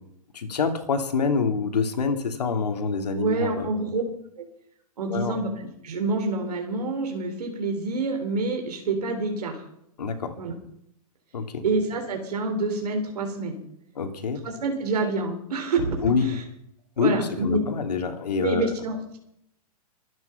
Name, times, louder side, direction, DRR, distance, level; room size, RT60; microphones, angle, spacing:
voice 1, 0.3-3.7 5.1-5.4 10.0-10.4 11.3-11.6 13.9-14.4 16.0-16.4 17.0-18.7, left 5 dB, 85° left, 6 dB, 2.9 m, -26 dB
voice 2, 3.2-4.0 4.4-4.5 5.0-9.6 10.4-10.5 11.6-13.6 14.4-16.4 17.0-17.6 18.4-19.2, right 3 dB, 80° right, 3 dB, 3.8 m, -27 dB
23.5 x 9.6 x 5.7 m, 0.76 s
hypercardioid pair, 140°, 20 cm